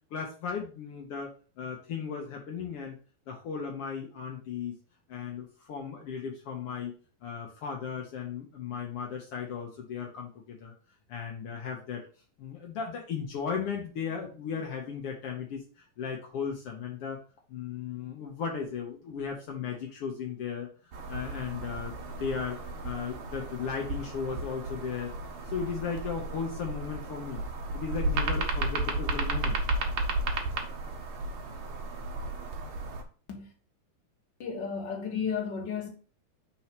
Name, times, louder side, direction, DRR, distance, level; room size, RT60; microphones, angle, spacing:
voice 1, 0.1-1.3 1.6-3.0 3.3-4.7 5.1-6.9 7.2-10.7 11.1-12.0 12.4-15.6 16.0-17.2 17.5-20.7 21.1-25.1 25.5-27.4 27.7-29.6, left 6 dB, 75° left, 1.3 m, -36 dB
sound 1, 20.9-33.0, right 2 dB, 80° right, 1.1 m, -33 dB
voice 2, 34.4-35.9, left 6 dB, 45° left, 1.6 m, -33 dB
4.6 x 4.5 x 5.9 m
omnidirectional pair, 4.2 m